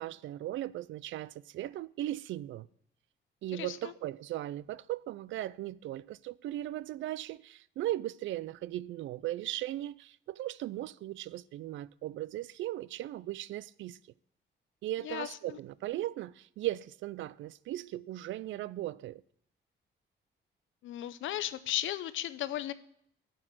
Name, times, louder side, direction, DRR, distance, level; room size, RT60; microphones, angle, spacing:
voice 1, 0.0-2.7 3.4-14.0 14.8-19.2, right 14 dB, 75° right, 0.4 m, -37 dB
voice 2, 3.5-3.9 15.0-15.6 20.8-22.7, left 13 dB, 85° left, 0.7 m, -36 dB
7.5 x 7.0 x 7.6 m
cardioid pair, 155°, 20 cm